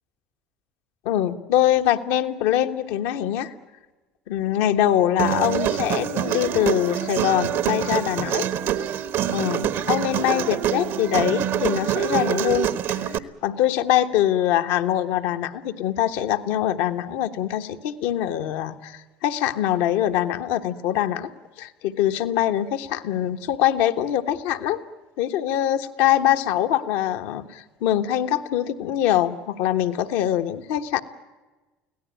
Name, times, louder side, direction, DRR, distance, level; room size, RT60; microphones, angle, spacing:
voice 1, 1.0-3.5 4.3-8.5 9.3-21.3 21.6-24.8 25.2-31.0, left 12 dB, 75° left, 7 dB, 1.3 m, -23 dB
Human voice, 5.2-13.2, right 10 dB, 65° right, 1.3 m, -25 dB
24.5 x 17.0 x 9.2 m, 1.2 s
supercardioid pair, 80°, 5 cm